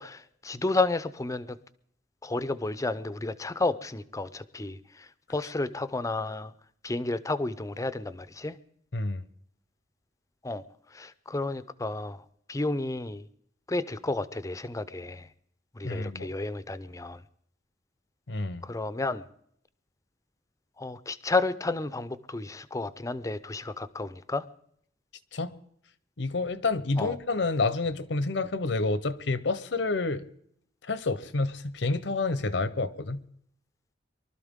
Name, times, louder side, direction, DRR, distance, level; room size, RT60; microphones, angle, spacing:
voice 1, 0.0-1.6 2.2-6.5 6.8-8.6 10.4-10.6 10.9-13.2 13.7-15.3 15.7-17.2 18.6-19.2 20.8-24.5 27.0-27.1, left 2 dB, 20° left, 0.5 m, -31 dB
voice 2, 8.9-9.2 15.8-16.3 18.3-18.6 25.3-25.5 26.2-30.3 30.8-33.2, left 3 dB, 75° left, 0.8 m, -29 dB
23.5 x 12.5 x 3.7 m
head